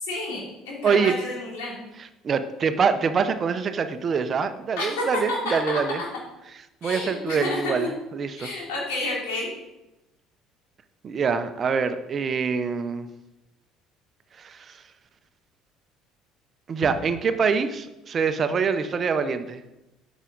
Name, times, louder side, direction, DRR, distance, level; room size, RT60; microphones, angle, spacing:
voice 1, 0.0-1.8 4.8-6.1 6.8-7.9 8.4-9.5, left 2 dB, 85° left, -3 dB, 3.1 m, -30 dB
voice 2, 0.8-1.2 2.0-6.0 6.8-8.5 11.0-13.1 14.4-14.8 16.7-19.6, right 5 dB, 45° right, 10 dB, 0.7 m, -25 dB
8.1 x 6.1 x 3.9 m, 0.97 s
supercardioid pair, 75°, 0 cm